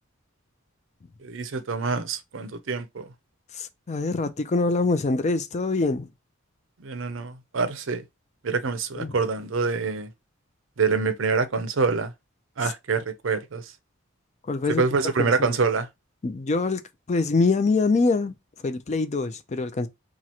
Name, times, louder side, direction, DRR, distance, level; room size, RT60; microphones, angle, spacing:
voice 1, 1.2-3.1 6.8-8.0 8.4-10.1 10.8-12.1 12.6-13.6 14.8-15.9, right 4 dB, 65° right, 0.6 m, -26 dB
voice 2, 3.5-6.1 8.9-9.2 12.6-12.7 14.4-14.8 15.2-15.5 16.2-16.8 17.1-18.4 18.6-19.9, left 3 dB, 35° left, 0.4 m, -24 dB
3.0 x 2.4 x 4.1 m
head